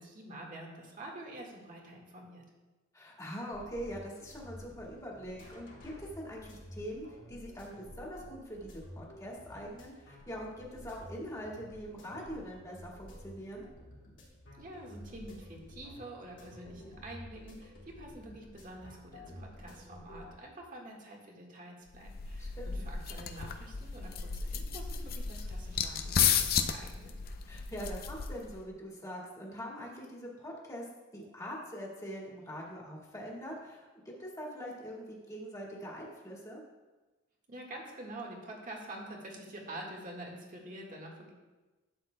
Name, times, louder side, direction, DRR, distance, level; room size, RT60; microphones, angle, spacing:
voice 1, 0.0-2.4 14.6-27.2 37.5-41.3, right 1 dB, 45° right, -1 dB, 1.6 m, -47 dB
voice 2, 2.9-13.6 22.4-22.9 27.5-30.9 31.1-36.6, equal, 15° left, -4 dB, 1.8 m, -43 dB
sound 1, 3.5-20.3, equal, 70° left, 2.6 m, -51 dB
sound 2, 21.9-28.6, left 7 dB, 50° left, 0.5 m, -33 dB
11.5 x 7.9 x 2.2 m, 1.2 s
head